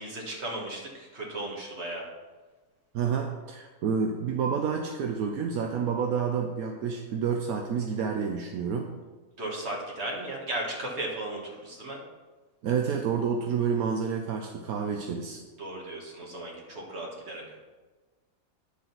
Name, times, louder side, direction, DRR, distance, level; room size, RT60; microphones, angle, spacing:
voice 1, 0.0-2.1 9.4-12.0 15.6-17.6, right 1 dB, 50° right, -2 dB, 1.9 m, -36 dB
voice 2, 2.9-8.9 12.6-15.4, right 6 dB, 80° right, 3 dB, 1.1 m, -29 dB
10.0 x 3.8 x 5.9 m, 1.3 s
omnidirectional pair, 1.5 m